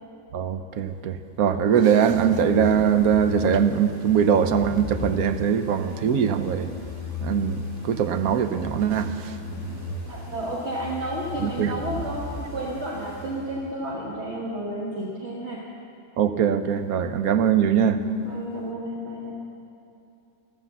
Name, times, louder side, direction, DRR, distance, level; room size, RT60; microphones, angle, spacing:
voice 1, 0.3-6.7 7.2-9.4 11.4-11.7 16.2-18.0, right 8 dB, 85° right, 10 dB, 1.2 m, -22 dB
sound 1, 2.1-13.8, left 3 dB, 10° right, 2.8 m, -36 dB
voice 2, 10.1-15.7 18.2-19.3, right 1 dB, 50° right, -3 dB, 1.6 m, -31 dB
13.5 x 12.5 x 7.2 m, 2.8 s
omnidirectional pair, 1.5 m